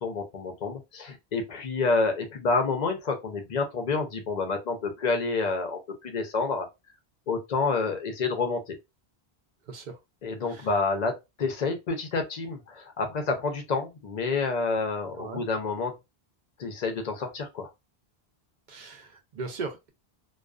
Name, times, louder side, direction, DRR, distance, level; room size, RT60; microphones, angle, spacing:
voice 1, 0.0-6.7 7.3-8.8 10.2-15.9 16.6-17.7, left 4 dB, 50° left, 0.6 m, -28 dB
voice 2, 18.7-19.9, right 4 dB, 55° right, 0.6 m, -37 dB
2.4 x 2.3 x 2.3 m
omnidirectional pair, 1.1 m